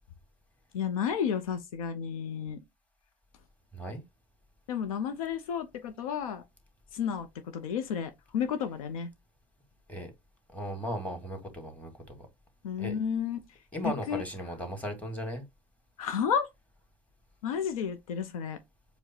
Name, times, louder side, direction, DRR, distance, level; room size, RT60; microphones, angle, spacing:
voice 1, 0.7-2.6 4.7-6.4 6.9-7.3 7.5-9.1 12.6-13.4 13.8-14.2 16.0-16.5 17.4-18.6, left 7 dB, 85° left, 0.6 m, -32 dB
voice 2, 10.5-12.3 12.8-13.0 13.7-15.4, equal, 10° left, 1.9 m, -36 dB
4.7 x 2.2 x 4.3 m
hypercardioid pair, 70°, 18 cm